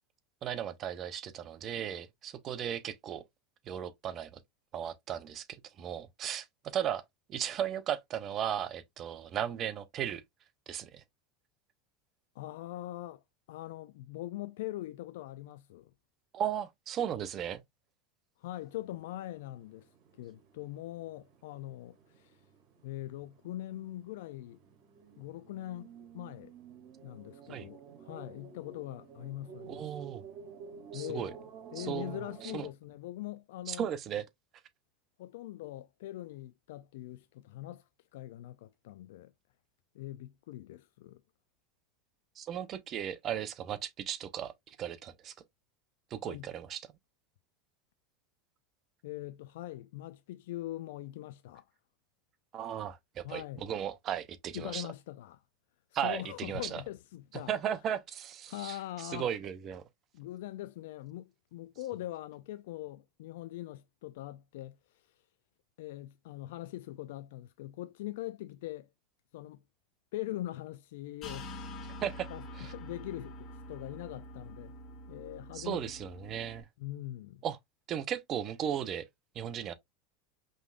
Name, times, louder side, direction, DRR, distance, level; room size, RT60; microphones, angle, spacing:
voice 1, 0.4-3.2 3.7-4.4 4.7-5.4 5.8-7.0 7.3-10.2 10.7-11.0 16.3-17.6 27.5-27.7 29.7-30.2 30.9-31.3 31.8-32.7 33.7-34.2 42.4-45.3 46.1-46.8 52.5-54.9 55.9-56.8 57.5-59.8 72.0-72.3 72.6-72.7 75.5-76.7 77.4-77.6 77.9-79.0 79.3-79.7, right 9 dB, 40° right, 0.8 m, -36 dB
voice 2, 12.3-13.2 13.5-15.9 18.4-19.9 20.2-22.4 22.8-24.6 25.2-26.5 27.0-30.1 30.9-31.4 31.7-33.9 35.2-39.3 39.9-41.2 46.2-46.5 49.0-51.7 53.2-53.6 54.5-55.4 56.0-57.5 58.5-59.3 60.1-65.2 65.8-68.9 69.3-69.6 70.1-71.5 72.3-74.7 75.1-75.8 76.3-76.4 76.8-77.4, left 15 dB, 75° left, 0.3 m, -42 dB
sound 1, 18.6-32.7, right 6 dB, 60° right, 2.4 m, -52 dB
sound 2, 71.2-76.6, left 1 dB, 40° left, 1.4 m, -46 dB
5.2 x 3.5 x 2.5 m
supercardioid pair, 115°, 0 cm